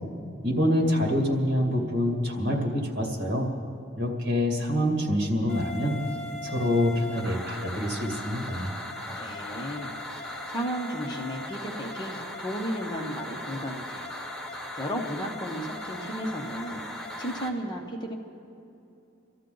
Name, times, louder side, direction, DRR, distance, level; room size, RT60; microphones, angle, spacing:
voice 1, 0.4-3.5 4.0-6.0 6.4-8.7, equal, 60° right, 0 dB, 2.3 m, -26 dB
sound 1, 5.5-17.5, left 1 dB, ahead, 1.2 m, -38 dB
voice 2, 9.1-14.1 14.8-18.1, equal, 20° left, 1 dB, 1.0 m, -34 dB
25.0 x 13.5 x 3.9 m, 2.8 s
head